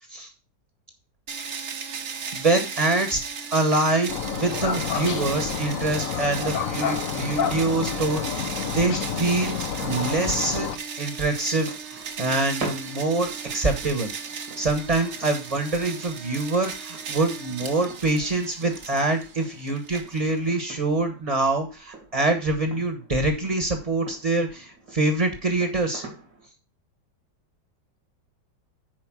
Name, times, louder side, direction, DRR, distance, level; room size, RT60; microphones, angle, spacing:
sound 1, 1.3-20.6, right 6 dB, 45° right, 1.1 m, -36 dB
voice 1, 2.3-3.2 3.5-10.7 11.0-14.1 14.6-26.0, right 2 dB, 20° right, 6 dB, 1.3 m, -25 dB
sound 2, 4.1-10.8, left 7 dB, 55° left, 1.1 m, -29 dB
sound 3, 11.4-26.5, right 3 dB, 80° right, 3.2 m, -45 dB
9.6 x 5.0 x 6.2 m, 0.33 s
omnidirectional pair, 1.9 m